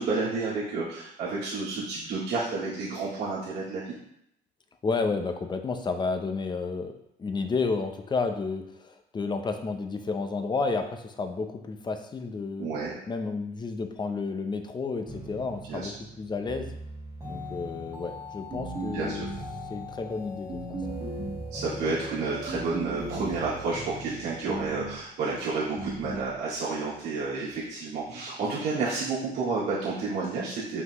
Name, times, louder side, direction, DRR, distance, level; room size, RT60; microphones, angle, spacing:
voice 1, 0.0-3.9 12.6-12.9 15.7-15.9 18.9-19.2 21.5-30.8, right 3 dB, 75° right, -9 dB, 2.2 m, -30 dB
voice 2, 4.8-6.9 7.2-12.7 13.1-16.7 17.2-19.2 19.7-20.6, left 4 dB, 25° left, 6 dB, 0.7 m, -31 dB
sound 1, 15.1-24.4, equal, 20° right, 2.1 m, -41 dB
sound 2, 18.5-19.6 20.5-21.6 22.5-23.6 24.5-25.0 25.8-26.3, right 1 dB, 40° right, 1.8 m, -36 dB
5.8 x 5.8 x 3.1 m, 0.76 s
cardioid pair, 110°, 17 cm